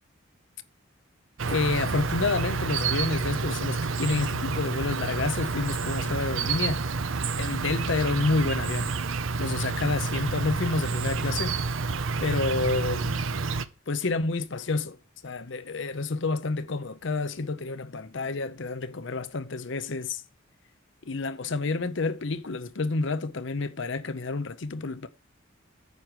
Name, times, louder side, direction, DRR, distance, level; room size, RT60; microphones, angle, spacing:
Insect, 1.4-13.6, right 4 dB, 70° right, 0.7 m, -29 dB
voice 1, 1.5-6.8 7.4-8.9 9.4-11.5 12.2-13.2 13.9-15.0 15.2-20.2 21.1-25.1, left 3 dB, 60° left, 0.7 m, -29 dB
9.6 x 4.8 x 7.4 m
head